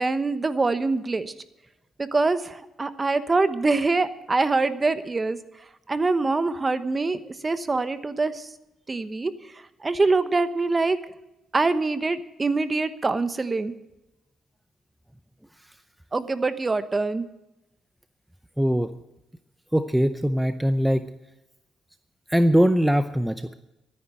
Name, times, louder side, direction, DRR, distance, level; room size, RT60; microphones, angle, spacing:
voice 1, 0.0-1.3 2.0-5.4 5.9-8.5 8.9-11.0 11.5-13.7 16.1-17.2, right 3 dB, 25° right, 12 dB, 1.0 m, -24 dB
voice 2, 18.6-18.9 19.7-21.1 22.3-23.5, equal, 5° right, 10 dB, 0.6 m, -21 dB
13.0 x 9.9 x 7.6 m, 0.93 s
cardioid pair, 90°, 0 cm